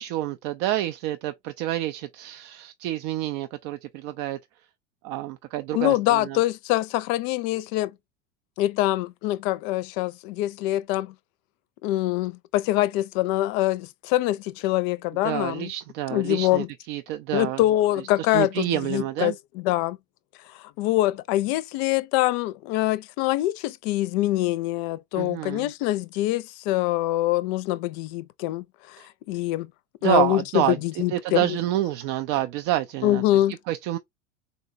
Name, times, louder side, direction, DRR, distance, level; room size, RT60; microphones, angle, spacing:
voice 1, 0.0-4.4 5.0-6.4 15.2-17.6 18.3-19.3 25.2-25.7 29.0-29.1 30.0-30.8 31.1-33.2 33.7-34.0, right 14 dB, 55° right, 0.4 m, -28 dB
voice 2, 5.7-7.9 8.6-11.1 11.8-15.7 16.1-16.7 17.3-20.0 20.5-29.7 30.0-31.6 33.0-33.6, left 16 dB, 60° left, 0.5 m, -24 dB
3.9 x 2.2 x 2.5 m
hypercardioid pair, 95°, 37 cm